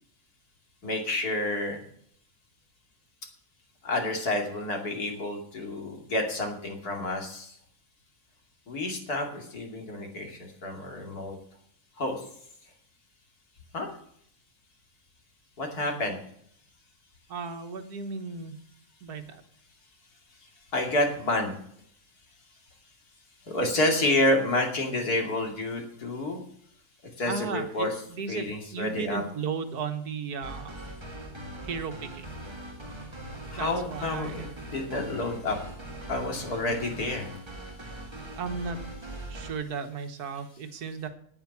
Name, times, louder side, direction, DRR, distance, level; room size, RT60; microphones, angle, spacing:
voice 1, 0.8-1.8 3.8-7.6 8.7-11.4 12.0-12.2 13.7-13.9 15.6-16.2 20.7-21.5 23.5-26.4 27.2-29.2 33.5-35.6 36.1-37.3, left 1 dB, 80° left, 2 dB, 3.1 m, -29 dB
voice 2, 17.3-18.6 19.0-19.4 27.2-30.8 31.6-32.3 33.6-34.5 38.4-38.8 39.3-41.1, right 5 dB, 85° right, 8 dB, 1.7 m, -35 dB
sound 1, 30.4-39.5, right 1 dB, 20° right, 1.7 m, -41 dB
9.2 x 8.9 x 8.5 m, 0.66 s
omnidirectional pair, 1.6 m